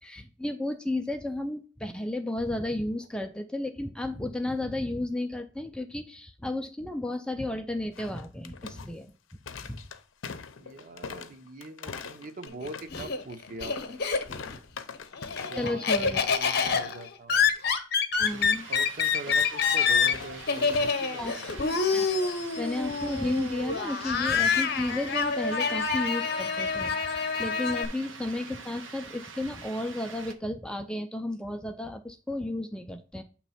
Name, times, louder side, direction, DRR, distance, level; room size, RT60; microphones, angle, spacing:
voice 1, 0.0-9.4 9.7-9.8 11.9-12.0 15.6-16.2 18.2-18.6 21.2-21.3 21.6-22.1 22.6-33.2, left 1 dB, 5° left, 5 dB, 0.4 m, -33 dB
sound 1, 7.9-15.8 16.1-16.3 16.7-17.0 19.1-21.7, left 5 dB, 90° left, 0.6 m, -43 dB
voice 2, 10.6-14.0 15.5-17.5 18.3-18.4 18.7-21.8, right 2 dB, 45° right, 7 dB, 0.7 m, -42 dB
Laughter, 12.5-14.6 15.0-27.9, left 5 dB, 55° left, 0.8 m, -27 dB
sound 2, 18.3-30.3, right 5 dB, 80° right, 0.8 m, -45 dB
7.6 x 3.0 x 5.6 m, 0.37 s
head